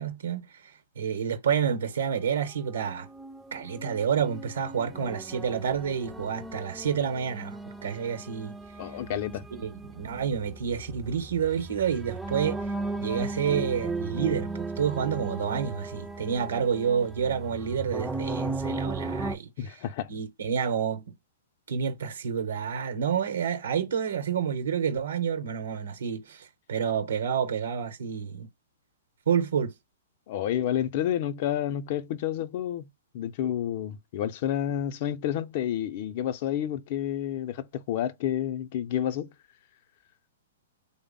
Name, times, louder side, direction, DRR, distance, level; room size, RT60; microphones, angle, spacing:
voice 1, 0.0-3.1 3.5-8.5 9.5-12.6 13.0-19.5 20.1-21.2 21.7-28.5 29.3-29.7, right 7 dB, 80° right, 0.8 m, -29 dB
sound 1, 2.8-19.4, right 3 dB, 5° right, 0.4 m, -36 dB
voice 2, 8.8-9.4 19.6-20.1 30.3-32.9 33.1-39.3, left 11 dB, 50° left, 0.5 m, -30 dB
3.4 x 2.0 x 3.8 m
hypercardioid pair, 130°, 0 cm